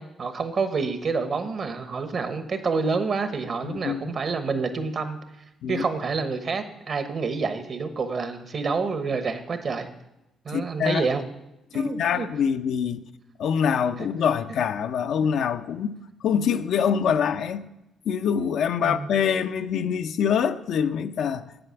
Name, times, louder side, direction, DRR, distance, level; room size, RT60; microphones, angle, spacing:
voice 1, 0.0-5.2 5.7-9.9 10.4-11.2 11.7-12.3 14.0-14.1 18.8-19.1, right 4 dB, 55° right, 1.0 m, -28 dB
voice 2, 3.6-4.2 5.6-5.8 10.5-11.1 11.7-13.0 13.4-17.6 18.1-21.5, left 7 dB, 75° left, 0.5 m, -25 dB
7.8 x 7.8 x 5.8 m
supercardioid pair, 70°, 0 cm